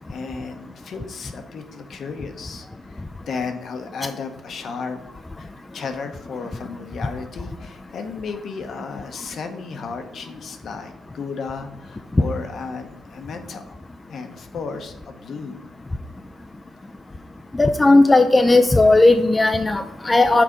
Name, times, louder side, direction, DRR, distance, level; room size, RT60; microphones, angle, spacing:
voice 1, 0.0-5.0 5.4-5.5 5.7-13.8 14.1-15.7, left 5 dB, 60° left, 6 dB, 0.8 m, -34 dB
voice 2, 17.6-20.4, left 2 dB, 20° left, 7 dB, 0.4 m, -15 dB
6.1 x 4.1 x 4.9 m, 0.95 s
cardioid pair, 90°, 0 cm